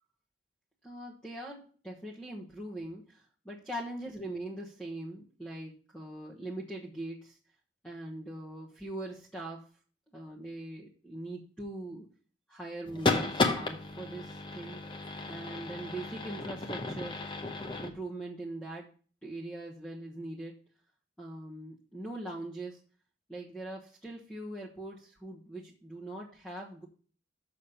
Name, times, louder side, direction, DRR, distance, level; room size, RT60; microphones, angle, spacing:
voice 1, 0.8-7.4 7.8-9.7 10.1-12.1 12.5-17.2 17.8-18.9 19.2-20.6 21.2-22.8 23.3-26.9, right 1 dB, 5° left, -5 dB, 1.2 m, -42 dB
sound 1, 12.9-17.9, left 3 dB, 25° left, 0.9 m, -33 dB
6.9 x 6.4 x 5.6 m, 0.40 s
head